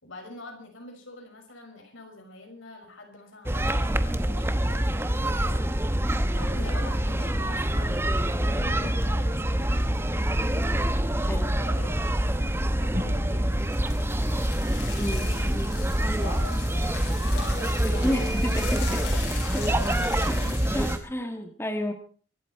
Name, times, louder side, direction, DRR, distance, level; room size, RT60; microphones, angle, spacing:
voice 1, 0.0-6.0 6.3-10.0 11.2-11.9 12.3-13.7 15.1-15.7 16.2-18.7 19.0-20.5, left 2 dB, 85° left, 2 dB, 6.1 m, -45 dB
sound 1, 3.5-21.0, right 1 dB, 10° right, 0.9 m, -26 dB
sound 2, 7.3-20.9, left 5 dB, 65° left, 6.2 m, -43 dB
sound 3, 12.9-13.9, left 1 dB, 40° right, 4.9 m, -41 dB
voice 2, 15.0-15.8 18.0-19.0 19.5-19.7 20.3-20.4 20.7-21.9, left 1 dB, 10° left, 5 dB, 1.5 m, -31 dB
24.5 x 13.0 x 4.5 m, 0.42 s
head